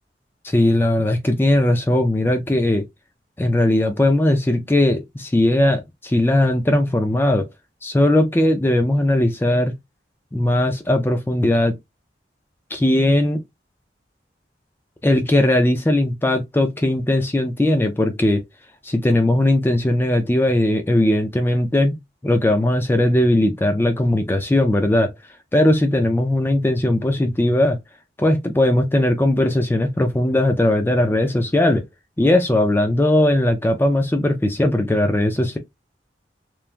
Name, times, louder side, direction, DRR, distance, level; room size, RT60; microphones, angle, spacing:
voice 1, 0.4-2.9 3.4-7.5 7.8-9.7 10.3-11.8 12.7-13.4 15.0-18.4 18.8-22.0 22.2-25.1 25.5-27.8 28.2-31.8 32.2-35.6, left 1 dB, 15° left, 0.3 m, -18 dB
3.1 x 2.2 x 2.4 m
head